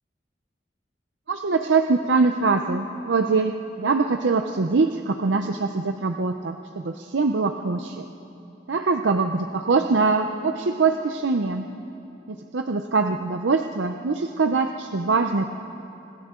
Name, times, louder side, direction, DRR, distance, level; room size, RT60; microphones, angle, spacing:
voice 1, 1.3-8.1 8.7-11.7 12.3-15.5, right 4 dB, 90° right, 5 dB, 0.7 m, -23 dB
28.5 x 26.0 x 3.8 m, 2.8 s
head